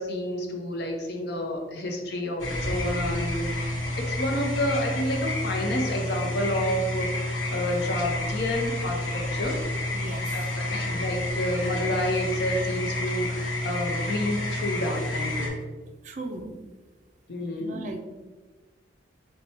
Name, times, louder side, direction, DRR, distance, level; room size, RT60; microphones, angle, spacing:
voice 1, 0.0-7.1 7.5-9.6 10.3-15.6 17.3-17.8, left 1 dB, 60° left, 2 dB, 0.7 m, -29 dB
sound 1, 2.4-15.5, left 1 dB, 90° left, 1.0 m, -30 dB
voice 2, 9.9-10.4 16.0-16.6 17.6-18.0, right 2 dB, 40° right, 5 dB, 0.4 m, -37 dB
4.2 x 2.2 x 4.3 m, 1.3 s
head